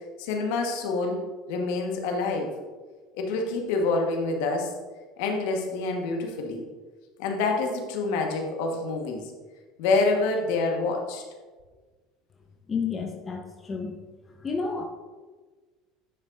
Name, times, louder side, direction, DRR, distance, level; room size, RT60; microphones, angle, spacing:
voice 1, 0.2-1.2 1.5-2.5 3.1-4.7 5.2-6.6 7.2-9.2 9.8-11.2, left 3 dB, 65° left, 2 dB, 1.3 m, -27 dB
voice 2, 12.7-14.0 14.4-14.9, left 5 dB, 30° left, 3 dB, 0.9 m, -30 dB
9.6 x 7.1 x 2.6 m, 1.3 s
hypercardioid pair, 70°, 0 cm